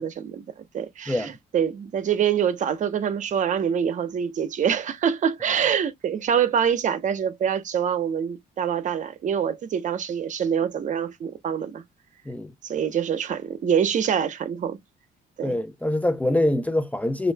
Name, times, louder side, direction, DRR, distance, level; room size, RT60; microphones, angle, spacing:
voice 1, 0.0-11.8 12.6-14.8 15.4-15.5, right 8 dB, 50° right, 0.9 m, -25 dB
voice 2, 15.4-17.3, left 1 dB, 10° left, 0.5 m, -24 dB
6.1 x 2.6 x 2.3 m
cardioid pair, 110°, 17 cm